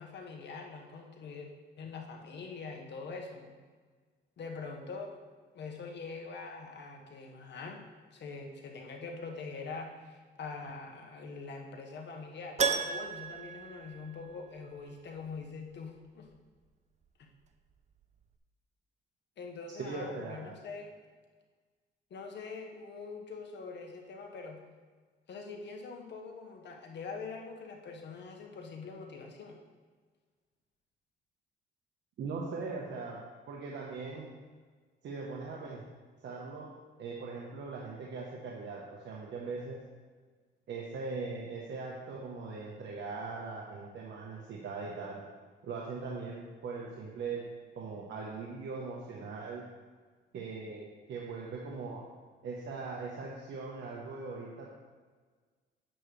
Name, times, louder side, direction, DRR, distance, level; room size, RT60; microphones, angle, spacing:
voice 1, 0.0-1.5 1.8-3.6 4.4-5.1 5.5-7.8 8.1-16.3 19.4-20.9 22.1-24.6 25.3-29.6, left 4 dB, 60° left, 1 dB, 1.4 m, -44 dB
Keyboard (musical), 12.6-14.6 14.9-15.0 17.7-17.8 18.0-18.1, right 5 dB, 35° right, 0.5 m, -34 dB
voice 2, 19.7-20.5 32.2-34.3 35.0-35.8 36.2-36.7 37.0-39.8 40.7-45.2 45.6-47.5 47.7-49.6 50.3-52.0 52.4-54.7, right 4 dB, 65° right, -2 dB, 1.2 m, -40 dB
8.9 x 7.5 x 3.3 m, 1.5 s
cardioid pair, 90°, 20 cm